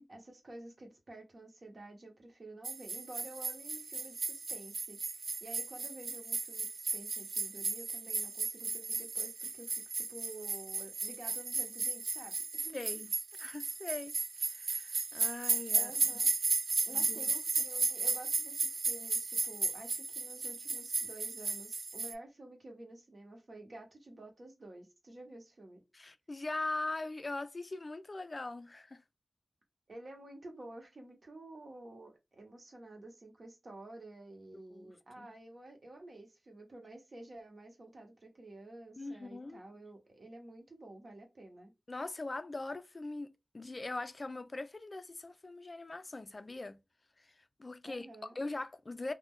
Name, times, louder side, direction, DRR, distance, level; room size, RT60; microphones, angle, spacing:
voice 1, 0.0-12.8 15.7-16.3 16.8-25.8 29.9-41.7 47.8-48.4, right 2 dB, 50° right, 1.0 m, -51 dB
sound 1, 2.6-22.1, right 4 dB, 85° right, 0.3 m, -35 dB
voice 2, 12.7-13.1 13.4-14.1 14.5-15.9 16.9-17.3 25.9-29.0 34.7-35.3 39.0-39.6 41.9-43.3 43.5-46.8 47.2-47.3 47.6-49.1, left 2 dB, 35° left, 0.3 m, -41 dB
2.4 x 2.1 x 3.5 m
wide cardioid pair, 100°, 0 cm